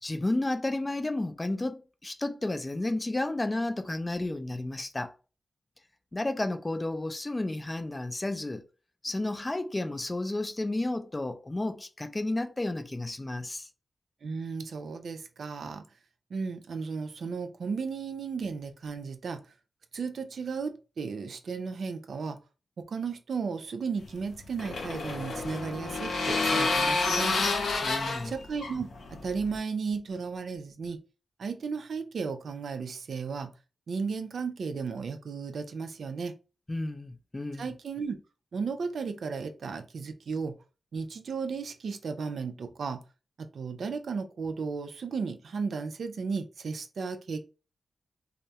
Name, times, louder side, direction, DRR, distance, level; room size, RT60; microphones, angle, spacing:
voice 1, 0.0-5.1 6.1-8.6 9.0-13.7 27.8-28.3 36.7-37.7, left 2 dB, 25° left, 0.3 m, -32 dB
voice 2, 14.2-15.8 16.3-19.5 19.9-22.4 22.8-27.4 28.2-31.0 31.4-33.5 33.9-36.4 37.6-38.2 38.5-40.6 40.9-43.0 43.4-47.4, right 5 dB, 75° right, 0.3 m, -34 dB
sound 1, 24.0-29.6, left 3 dB, 85° left, 0.5 m, -29 dB
2.2 x 2.0 x 2.7 m
cardioid pair, 60°, 0 cm